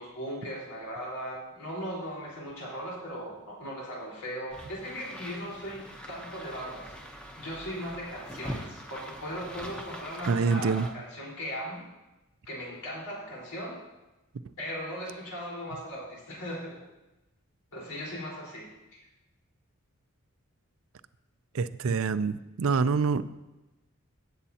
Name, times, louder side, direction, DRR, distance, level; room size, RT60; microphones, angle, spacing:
voice 1, 0.0-6.9 7.4-11.8 12.4-13.8 14.6-16.8 17.7-19.0, equal, 85° left, -4 dB, 4.3 m, -38 dB
sound 1, 4.5-10.9, equal, 5° left, 0.9 m, -43 dB
voice 2, 10.3-10.9 21.5-23.2, right 5 dB, 70° right, 14 dB, 0.4 m, -26 dB
17.0 x 8.1 x 2.9 m, 1.0 s
head